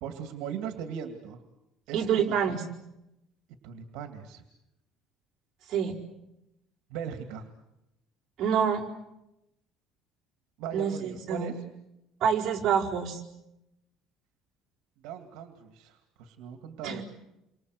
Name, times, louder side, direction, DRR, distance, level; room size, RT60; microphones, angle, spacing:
voice 1, 0.0-1.4 1.9-2.6 3.6-4.4 6.9-7.5 10.6-11.5 15.0-17.0, right 8 dB, 70° right, 6 dB, 2.5 m, -39 dB
voice 2, 1.9-2.6 5.7-5.9 8.4-8.8 10.7-11.5 12.2-13.2 16.8-17.0, right 7 dB, 40° right, -4 dB, 4.6 m, -27 dB
29.0 x 24.5 x 8.0 m, 0.89 s
cardioid pair, 175°, 0 cm